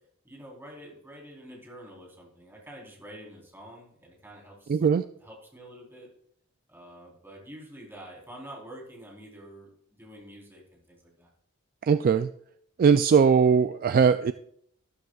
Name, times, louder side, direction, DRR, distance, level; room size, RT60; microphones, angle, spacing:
voice 1, 0.2-4.8 5.2-6.1 6.7-11.3, equal, 10° right, -2 dB, 3.8 m, -47 dB
voice 2, 4.7-5.0 11.8-12.3 12.8-14.3, right 6 dB, 40° right, 10 dB, 0.3 m, -20 dB
13.0 x 12.5 x 2.4 m, 0.67 s
head